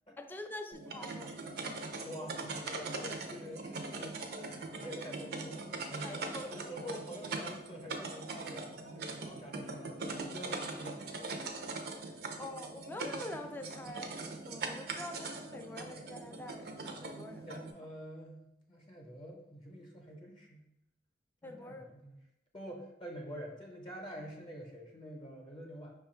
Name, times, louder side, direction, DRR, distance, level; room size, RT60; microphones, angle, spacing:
voice 1, 0.2-1.3 6.0-6.5 12.4-17.5 21.4-21.9, left 1 dB, 10° left, 5 dB, 0.3 m, -45 dB
sound 1, 0.7-17.7, right 3 dB, 60° right, 0.5 m, -41 dB
voice 2, 1.6-6.2 6.5-11.9 17.5-20.6 21.4-22.2 22.5-25.9, equal, 30° left, 0 dB, 0.7 m, -47 dB
5.3 x 2.3 x 4.3 m, 0.87 s
head